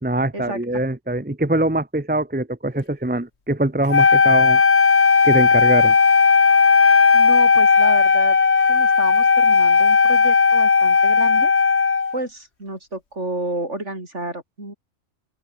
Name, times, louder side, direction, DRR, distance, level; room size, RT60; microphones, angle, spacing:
voice 1, 0.0-4.6 5.2-5.9, right 1 dB, 10° right, 0.9 m, -23 dB
Wind instrument woodwind instrument, 3.9-12.2, left 5 dB, 55° left, 2.0 m, -15 dB
voice 2, 6.8-8.4 8.7-11.5 12.1-14.7, right 2 dB, 60° right, 6.7 m, -31 dB
open air
omnidirectional pair, 1.4 m